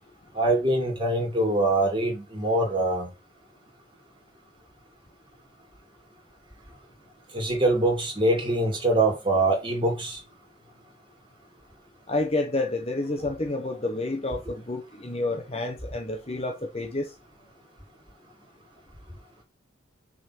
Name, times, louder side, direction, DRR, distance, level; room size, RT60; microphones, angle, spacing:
voice 1, 0.3-3.1 7.3-10.2, right 2 dB, 25° right, 2.8 m, -24 dB
voice 2, 12.1-17.1, left 2 dB, 30° left, 1.0 m, -29 dB
6.3 x 4.0 x 6.1 m
head